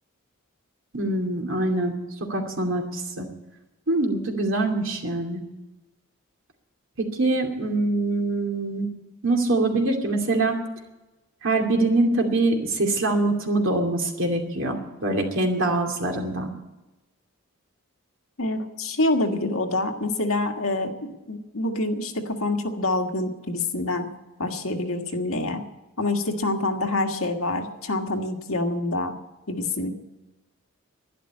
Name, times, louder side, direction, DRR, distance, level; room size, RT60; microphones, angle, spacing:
voice 1, 0.9-2.0 2.3-3.3 3.9-5.4 7.0-8.9 9.2-10.6 11.4-16.5, right 2 dB, 60° right, 2 dB, 2.5 m, -24 dB
voice 2, 18.4-24.1 24.4-25.6 26.0-29.1 29.5-29.9, left 2 dB, 75° left, 3 dB, 1.7 m, -26 dB
12.0 x 11.0 x 8.8 m, 1.0 s
head